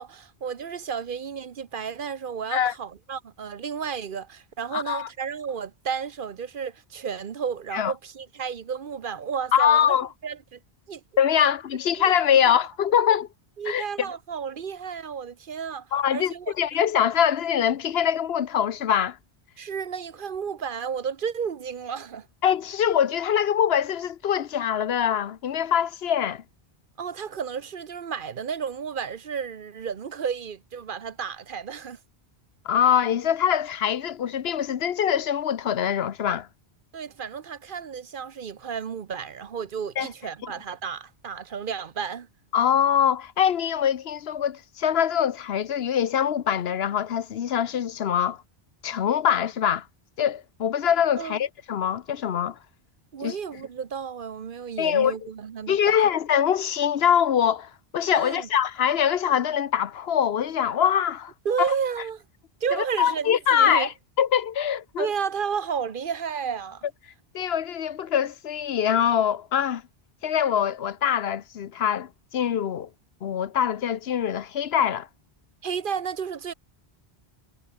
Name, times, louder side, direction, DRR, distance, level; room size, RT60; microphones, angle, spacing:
voice 1, 0.0-10.0 10.2-10.6 10.9-11.0 11.4-11.5 11.9-12.1 13.6-16.5 19.6-22.3 27.0-32.0 36.9-42.3 51.2-51.4 53.1-56.0 58.2-58.5 61.4-62.2 62.6-63.9 65.0-66.8 75.6-76.5, right 7 dB, 55° right, 1.0 m, -32 dB
voice 2, 4.7-5.1 7.7-7.9 9.5-10.1 11.2-13.3 13.7-13.8 15.9-19.2 22.4-26.4 32.6-36.5 40.0-40.1 40.4-40.5 42.5-48.4 48.8-49.9 50.2-52.6 53.2-53.4 54.8-55.2 55.7-61.3 61.6-61.7 62.7-63.9 64.2-65.1 67.3-69.8 70.2-72.9 73.2-75.1, left 9 dB, 75° left, 1.0 m, -23 dB
omnidirectional pair, 1.1 m